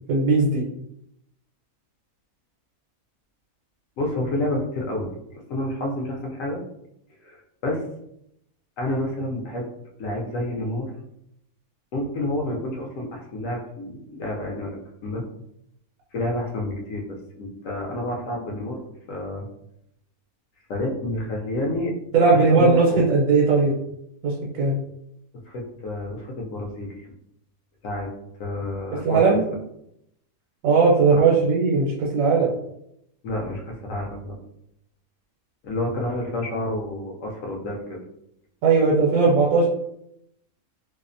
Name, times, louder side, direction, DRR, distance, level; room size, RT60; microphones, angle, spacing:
voice 1, 0.1-0.6 22.1-23.8 24.2-24.8 29.0-29.4 30.6-32.5 38.6-39.7, right 4 dB, 80° right, -3 dB, 1.1 m, -18 dB
voice 2, 4.0-6.6 7.2-7.8 8.8-9.7 10.0-10.9 11.9-14.8 15.0-15.2 16.1-18.8 19.1-19.4 20.7-21.9 22.3-23.1 25.5-27.0 27.8-28.1 28.4-29.4 31.2-31.4 33.2-34.4 35.6-38.0, left 1 dB, 70° left, 0 dB, 0.9 m, -29 dB
2.6 x 2.0 x 2.5 m, 0.78 s
omnidirectional pair, 1.6 m